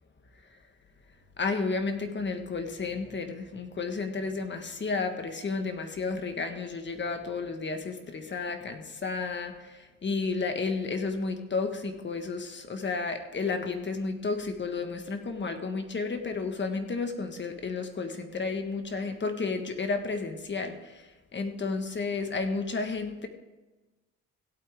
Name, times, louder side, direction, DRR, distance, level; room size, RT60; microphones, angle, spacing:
voice 1, 1.4-23.3, left 4 dB, 40° left, 6 dB, 1.5 m, -32 dB
16.5 x 8.6 x 3.6 m, 1.2 s
cardioid pair, 90°, 30 cm